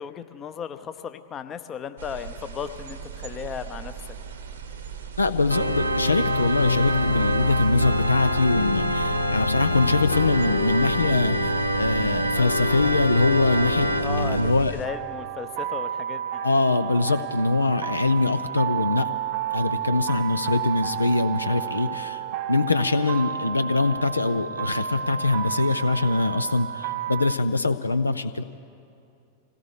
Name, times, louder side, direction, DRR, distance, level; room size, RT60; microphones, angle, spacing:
voice 1, 0.0-3.9 14.0-16.4, left 7 dB, 25° left, 10 dB, 0.7 m, -35 dB
sound 1, 2.0-14.9, right 7 dB, 65° right, 0.9 m, -39 dB
voice 2, 5.2-13.9 14.3-14.7 16.4-19.1 19.5-28.4, left 3 dB, 80° left, 12 dB, 0.4 m, -23 dB
Organ, 5.5-14.6, equal, 90° right, 0.7 m, -24 dB
sound 2, 14.8-27.4, right 10 dB, 45° right, 0.5 m, -31 dB
26.0 x 17.0 x 3.3 m, 2.5 s
figure-of-eight pair, 90°, 0 cm